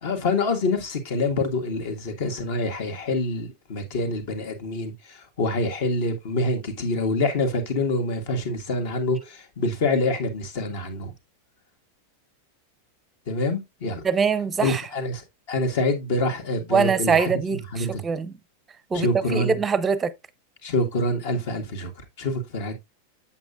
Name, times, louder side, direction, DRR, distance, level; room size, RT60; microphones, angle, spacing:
voice 1, 0.0-11.1 13.3-14.0 14.6-17.3 17.7-18.0 18.9-19.6 20.6-21.9 22.2-22.8, left 2 dB, 50° left, 1.7 m, -26 dB
voice 2, 14.0-14.8 16.7-18.3 18.9-20.1, right 5 dB, 15° right, 0.6 m, -23 dB
8.1 x 7.2 x 2.4 m
figure-of-eight pair, 90°, 0 cm